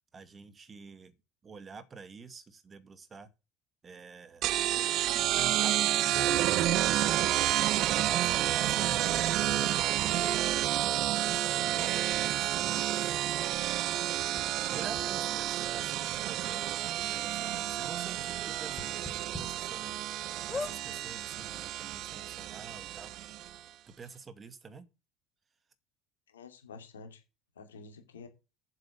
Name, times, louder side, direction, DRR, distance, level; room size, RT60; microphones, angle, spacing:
voice 1, 0.1-1.1 1.4-3.3 3.8-4.5 5.4-7.3 8.0-10.7 11.5-13.2 14.7-16.7 17.0-20.0 20.5-23.1 23.9-24.9, right 5 dB, 30° right, 2.0 m, -48 dB
sound 1, 4.4-23.6, right 13 dB, 60° right, 0.6 m, -30 dB
sound 2, 14.4-14.5 15.0-15.1 16.0-16.1 16.4-16.5 17.0-17.1 18.7-19.4 19.9-20.0 20.5-20.8 21.6-21.7 21.9-22.0, left 3 dB, 20° left, 4.0 m, -38 dB
voice 2, 26.3-27.2 27.6-28.3, left 4 dB, 90° left, 2.7 m, -49 dB
7.7 x 7.6 x 7.4 m
hypercardioid pair, 70°, 0 cm